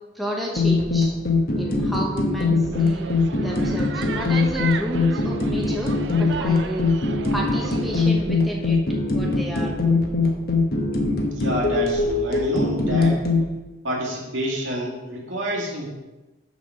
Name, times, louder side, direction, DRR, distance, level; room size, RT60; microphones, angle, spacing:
voice 1, 0.1-1.1 1.6-3.1 3.4-6.9 7.3-8.8 9.1-9.8, equal, ahead, -3 dB, 1.1 m, -31 dB
sound 1, 0.6-13.4, left 3 dB, 50° left, 1.1 m, -22 dB
sound 2, 2.7-8.1, right 5 dB, 60° right, 0.4 m, -34 dB
voice 2, 11.3-13.2 13.8-15.9, equal, 80° right, -3 dB, 2.2 m, -28 dB
6.2 x 5.9 x 5.6 m, 1.1 s
head